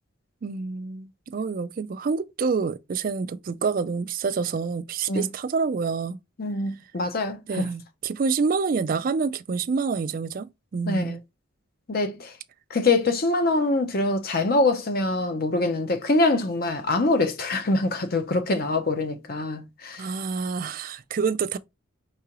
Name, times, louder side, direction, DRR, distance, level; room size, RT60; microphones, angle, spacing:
voice 1, 0.4-6.2 7.5-11.2 20.0-21.6, right 5 dB, 40° right, 0.3 m, -27 dB
voice 2, 6.4-7.7 10.9-11.2 11.9-12.3 12.7-20.1, left 2 dB, 45° left, 0.7 m, -24 dB
4.8 x 3.7 x 2.9 m
head